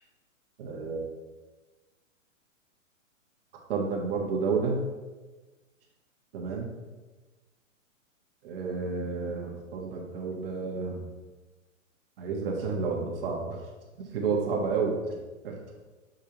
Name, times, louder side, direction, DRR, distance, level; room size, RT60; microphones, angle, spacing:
voice 1, 0.6-1.0 3.7-4.8 6.3-6.7 8.4-11.1 12.2-13.6 14.0-15.1 15.4-15.5, right 4 dB, 45° right, 0 dB, 1.4 m, -30 dB
6.2 x 5.2 x 2.9 m, 1.2 s
hypercardioid pair, 150°, 40 cm